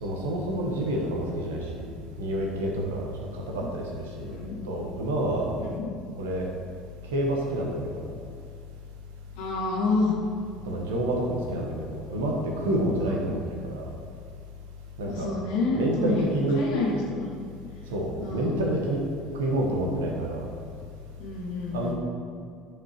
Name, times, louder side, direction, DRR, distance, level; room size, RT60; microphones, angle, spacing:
voice 1, 0.0-1.9 2.2-4.3 4.6-5.5 6.2-6.5 7.1-8.1 10.6-13.9 15.0-15.3 15.7-16.7 17.9-19.0 19.3-20.5 21.7-21.9, right 1 dB, 75° right, 0 dB, 1.1 m, -28 dB
voice 2, 5.6-5.9 9.4-10.2 13.0-13.3 15.1-17.4 18.2-18.6 21.2-21.9, left 3 dB, 70° left, -4 dB, 1.8 m, -29 dB
9.9 x 5.1 x 3.0 m, 2.3 s
hypercardioid pair, 65°, 0 cm